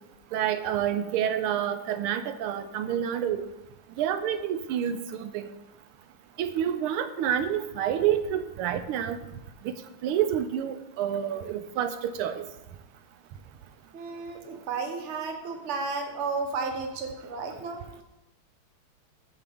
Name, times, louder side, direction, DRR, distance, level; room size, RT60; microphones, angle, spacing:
voice 1, 0.3-3.4 4.0-5.5 6.4-9.2 9.6-9.7 10.0-12.5, right 9 dB, 85° right, 11 dB, 1.5 m, -28 dB
voice 2, 13.9-18.0, right 4 dB, 45° right, 4 dB, 1.0 m, -33 dB
13.5 x 5.2 x 3.5 m, 0.95 s
omnidirectional pair, 2.4 m